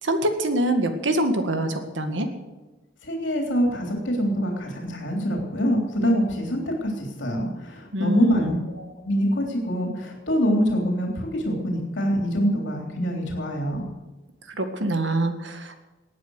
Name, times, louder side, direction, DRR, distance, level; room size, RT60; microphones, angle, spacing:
voice 1, 0.0-2.3 7.9-8.6 14.5-15.8, right 1 dB, 85° right, 7 dB, 1.9 m, -25 dB
voice 2, 3.0-13.9, equal, 85° left, 1 dB, 3.4 m, -25 dB
18.5 x 9.6 x 6.4 m, 1.2 s
head